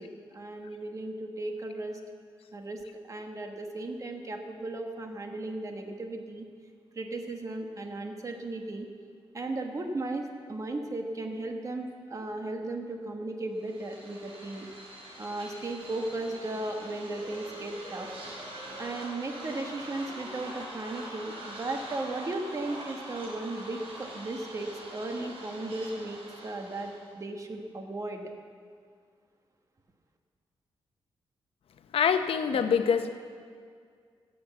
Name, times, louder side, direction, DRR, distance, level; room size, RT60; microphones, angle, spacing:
voice 1, 0.0-2.0 2.5-2.8 3.1-6.5 6.9-8.9 9.3-14.7 15.2-18.1 18.8-28.3, right 2 dB, 35° right, 4 dB, 1.4 m, -36 dB
sound 1, 13.6-27.1, right 1 dB, 85° right, 3.5 m, -44 dB
voice 2, 31.9-33.1, left 7 dB, 75° left, 8 dB, 0.8 m, -25 dB
16.0 x 8.0 x 7.1 m, 2.1 s
wide cardioid pair, 120°, 10 cm